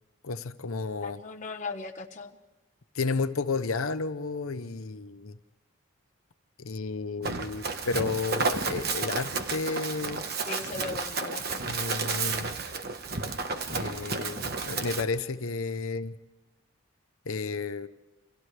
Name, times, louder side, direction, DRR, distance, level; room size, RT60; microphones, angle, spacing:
voice 1, 0.2-1.2 2.9-5.4 6.6-10.2 11.6-12.5 13.7-16.1 17.3-17.9, left 4 dB, 85° left, 9 dB, 0.8 m, -32 dB
voice 2, 1.0-2.4 10.5-11.6, left 4 dB, 35° left, 2 dB, 1.2 m, -38 dB
Run, 7.2-15.0, right 4 dB, 45° right, 1.2 m, -32 dB
29.0 x 26.5 x 3.3 m, 1.2 s
head